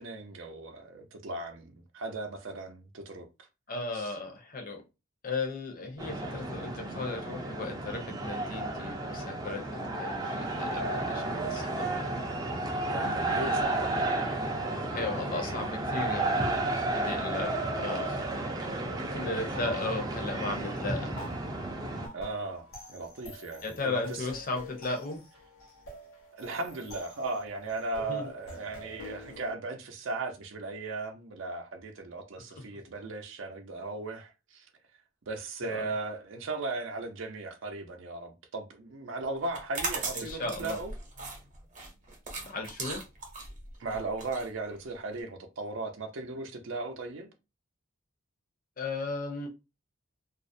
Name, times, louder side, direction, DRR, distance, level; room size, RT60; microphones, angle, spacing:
voice 1, 0.0-3.3 3.9-4.1 10.7-11.5 12.8-14.1 19.8-20.0 22.1-24.3 26.3-34.7 35.3-40.9 43.8-47.3, right 2 dB, 70° right, 0.5 m, -37 dB
voice 2, 3.7-4.8 5.2-11.9 12.8-13.1 14.9-17.5 17.8-18.2 19.1-21.1 23.6-25.2 28.1-28.3 35.6-35.9 40.1-40.8 42.4-43.0 48.8-49.5, left 3 dB, 45° left, 0.6 m, -36 dB
sound 1, 6.0-22.1, right 2 dB, 20° right, 0.4 m, -32 dB
sound 2, 21.2-29.5, left 1 dB, 85° left, 0.9 m, -48 dB
sound 3, 39.4-45.2, right 3 dB, 40° right, 0.7 m, -38 dB
2.4 x 2.0 x 2.5 m
head